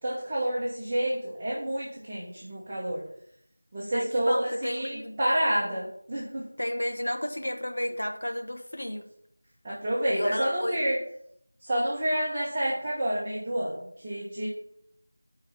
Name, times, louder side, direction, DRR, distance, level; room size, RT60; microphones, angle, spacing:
voice 1, 0.0-3.0 3.7-6.4 9.6-11.0 11.6-13.7 14.0-14.5, right 1 dB, 15° right, -9 dB, 1.2 m, -29 dB
voice 2, 3.9-5.2 6.6-9.0 10.1-10.8, left 1 dB, 75° left, 4 dB, 1.3 m, -32 dB
10.0 x 4.8 x 4.3 m, 0.70 s
figure-of-eight pair, 175°, 0 cm